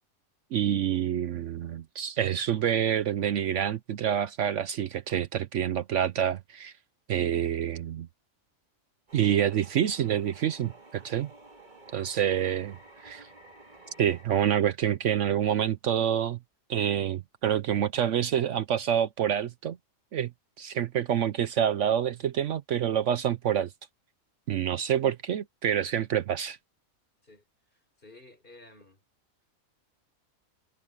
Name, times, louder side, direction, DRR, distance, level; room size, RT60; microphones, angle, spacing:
voice 1, 0.5-6.7 7.1-8.1 9.1-11.3 11.9-12.8 13.0-13.3 14.0-16.4 16.7-19.8 20.1-20.3 20.6-23.7 24.5-26.6, right 9 dB, 65° right, 0.9 m, -27 dB
sound 1, 9.1-14.2, right 2 dB, 35° right, 2.5 m, -52 dB
voice 2, 27.7-29.0, left 2 dB, 40° left, 5.4 m, -54 dB
omnidirectional pair, 1.4 m